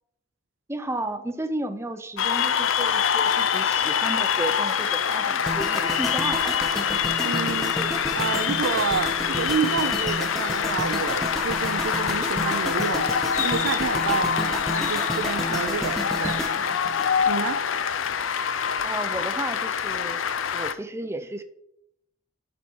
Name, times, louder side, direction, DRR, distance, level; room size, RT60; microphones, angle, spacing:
voice 1, 0.7-6.7 18.8-20.2 20.5-21.4, right 1 dB, 15° right, 0.5 m, -33 dB
Cheering / Applause, 2.2-20.7, left 7 dB, 90° left, 0.5 m, -25 dB
sound 1, 5.5-17.6 17.9-18.2, equal, ahead, 1.0 m, -32 dB
voice 2, 7.2-13.1 13.4-16.4 17.3-17.6, right 6 dB, 80° right, 0.4 m, -29 dB
sound 2, 12.2-16.0 16.2-16.6 16.9-17.1, left 7 dB, 40° left, 0.5 m, -35 dB
11.5 x 4.3 x 4.6 m
head